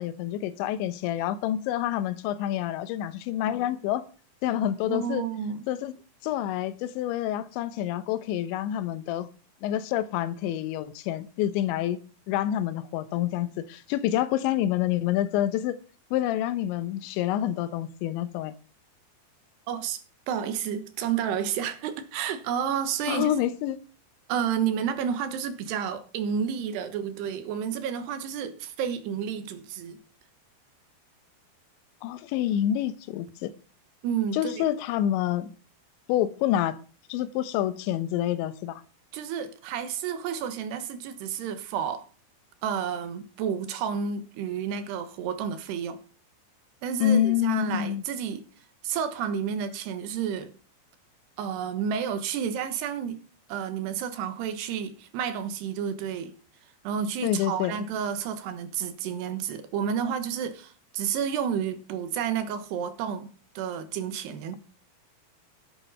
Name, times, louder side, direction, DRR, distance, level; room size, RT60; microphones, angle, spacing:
voice 1, 0.0-4.0 4.4-5.2 5.7-5.9 6.2-9.3 9.6-12.0 12.3-15.8 16.1-18.5 23.1-23.8 32.0-33.5 34.3-35.5 36.1-36.8 37.1-38.8 47.0-48.0 57.2-57.7, left 12 dB, 90° left, 3.2 m, -27 dB
voice 2, 4.9-5.6 19.7-20.0 20.3-23.3 24.3-30.0 34.0-34.6 39.1-42.1 42.6-46.0 46.8-48.4 48.8-50.5 51.4-53.2 53.5-56.3 56.8-63.3 63.6-64.6, right 8 dB, 75° right, 3.1 m, -30 dB
11.5 x 9.0 x 5.4 m
omnidirectional pair, 5.1 m